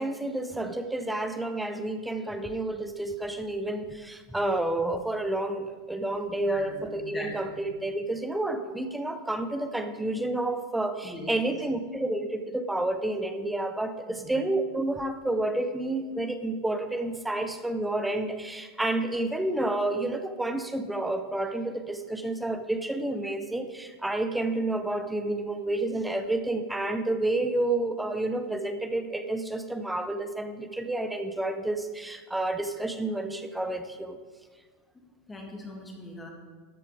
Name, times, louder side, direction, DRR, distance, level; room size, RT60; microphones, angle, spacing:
voice 1, 0.0-34.2, right 2 dB, 5° right, 8 dB, 0.5 m, -30 dB
voice 2, 6.5-7.6 11.0-11.3 14.1-14.4 35.3-36.3, left 1 dB, 10° left, 0 dB, 1.6 m, -41 dB
13.0 x 4.8 x 4.6 m, 1.5 s
supercardioid pair, 140°, 0 cm